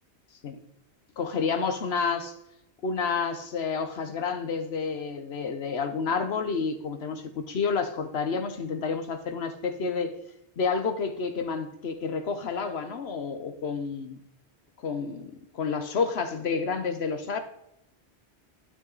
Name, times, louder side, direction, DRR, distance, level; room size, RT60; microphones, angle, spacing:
voice 1, 1.2-2.3 2.8-10.1 10.6-14.2 14.8-17.4, left 5 dB, 70° left, 1.2 m, -30 dB
11.5 x 5.4 x 4.0 m
omnidirectional pair, 1.1 m